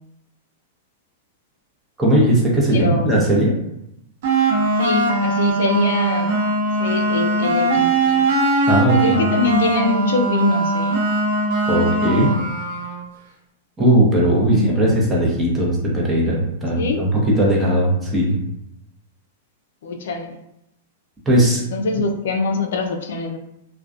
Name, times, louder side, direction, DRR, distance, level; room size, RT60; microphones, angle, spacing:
voice 1, 2.0-3.5 8.7-9.3 11.7-12.3 13.8-18.4 21.3-21.6, right 1 dB, 15° right, -4 dB, 0.8 m, -18 dB
voice 2, 2.7-3.2 4.8-6.4 6.8-8.3 8.9-11.0 14.5-14.9 16.8-17.1 19.8-20.4 21.7-23.4, left 3 dB, 75° left, 5 dB, 0.3 m, -23 dB
sound 1, 4.2-13.0, right 2 dB, 60° right, 0.7 m, -20 dB
2.4 x 2.2 x 2.4 m, 0.84 s
hypercardioid pair, 130°, 0 cm